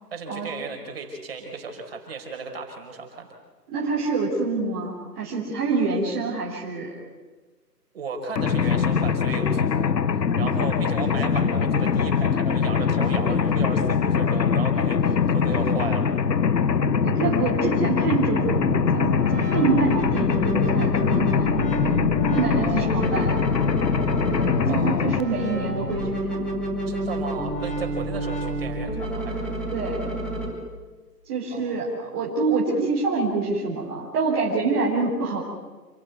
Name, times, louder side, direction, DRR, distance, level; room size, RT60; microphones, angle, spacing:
voice 1, 0.1-3.3 7.9-9.9 10.4-16.1 22.2-23.2 24.6-25.3 26.9-29.6 31.5-32.0, right 4 dB, 35° right, 3 dB, 5.2 m, -35 dB
voice 2, 3.7-6.9 10.4-10.7 16.5-21.5 22.3-23.4 24.3-26.5 29.7-30.1 31.2-35.4, right 4 dB, 15° right, -6 dB, 3.7 m, -26 dB
Mechanisms, 8.4-25.2, left 6 dB, 80° left, 1.2 m, -22 dB
sound 1, 18.5-30.5, right 1 dB, ahead, 1.8 m, -29 dB
28.5 x 15.5 x 9.5 m, 1.3 s
hypercardioid pair, 165°, 49 cm